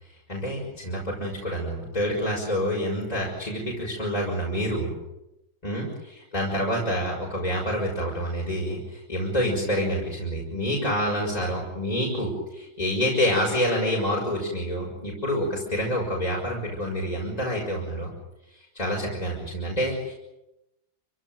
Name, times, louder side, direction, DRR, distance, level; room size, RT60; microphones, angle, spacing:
voice 1, 0.3-4.9 5.6-18.1 18.7-20.1, equal, 20° left, -3 dB, 6.3 m, -27 dB
29.5 x 16.5 x 9.2 m, 0.94 s
omnidirectional pair, 1.9 m